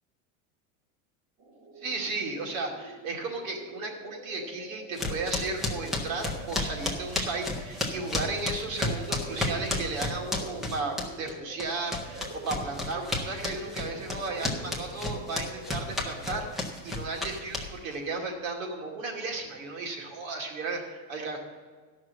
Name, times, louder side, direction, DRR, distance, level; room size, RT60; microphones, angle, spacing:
sound 1, 1.4-16.6, right 1 dB, 30° right, 1.4 m, -46 dB
voice 1, 1.8-21.4, right 3 dB, 75° right, 1 dB, 2.5 m, -35 dB
sound 2, 5.0-11.3 11.6-18.0, left 2 dB, ahead, 0.5 m, -32 dB
13.0 x 6.1 x 7.5 m, 1.5 s
supercardioid pair, 175°, 41 cm